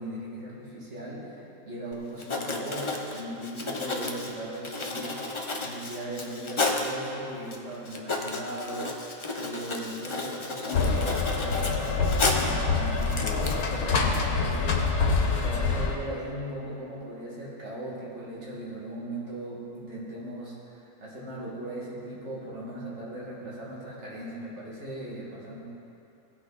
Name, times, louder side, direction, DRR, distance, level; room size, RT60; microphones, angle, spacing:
voice 1, 0.0-9.0 9.4-25.6, right 1 dB, 50° right, -6 dB, 2.5 m, -38 dB
Writing, 2.2-6.9 7.5-7.6 7.9-12.6 13.0-13.5, left 3 dB, 30° left, 0.6 m, -32 dB
sound 1, 10.7-16.0, left 4 dB, 90° left, 1.5 m, -26 dB
sound 2, 10.7-11.6 13.2-14.2, left 5 dB, 60° left, 0.9 m, -37 dB
17.5 x 6.2 x 4.1 m, 2.8 s
omnidirectional pair, 1.5 m